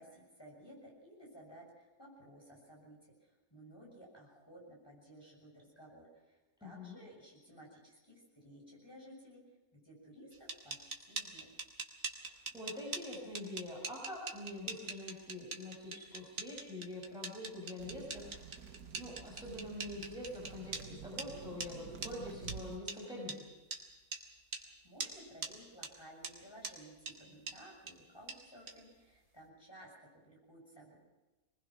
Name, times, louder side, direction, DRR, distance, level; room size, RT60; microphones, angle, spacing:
voice 1, 0.0-9.4 9.7-11.5 24.5-30.9, equal, 15° left, -2 dB, 7.0 m, -56 dB
voice 2, 6.6-7.0 12.5-18.6 18.9-23.4, left 1 dB, 5° right, -3 dB, 5.4 m, -45 dB
sound 1, 10.3-20.8 21.2-21.3 21.6-21.7 22.0-22.1 22.5-22.6 22.9-23.0 23.3-23.4 23.7-23.8 24.1-24.2 24.5-24.6 25.0-25.1 25.4-25.5 25.8-25.9 26.2-26.3 26.6-26.7 27.1-27.2 27.5-27.6 27.9-28.0 28.3-28.4 28.7-28.8, right 4 dB, 60° right, 2.7 m, -41 dB
sound 2, 17.8-22.8, right 7 dB, 90° right, 1.7 m, -50 dB
23.5 x 20.5 x 6.0 m, 1.2 s
omnidirectional pair, 1.6 m